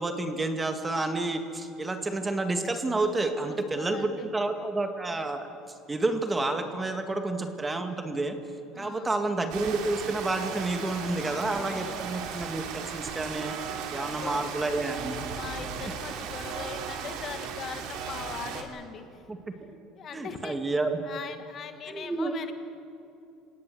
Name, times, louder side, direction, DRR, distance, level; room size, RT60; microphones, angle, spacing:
voice 1, 0.0-5.5 5.9-8.4 8.8-13.6 13.9-15.3 19.3-19.7 20.1-21.0 21.9-22.4, right 2 dB, 15° right, 6 dB, 1.9 m, -30 dB
voice 2, 3.4-4.3 8.7-9.2 11.2-12.1 13.9-14.5 15.3-19.2 19.9-20.6 21.0-22.5, left 7 dB, 40° left, 7 dB, 1.7 m, -41 dB
Rain, 9.5-18.6, right 7 dB, 70° right, 3.0 m, -36 dB
27.5 x 18.0 x 7.8 m, 2.7 s
cardioid pair, 130°, 0 cm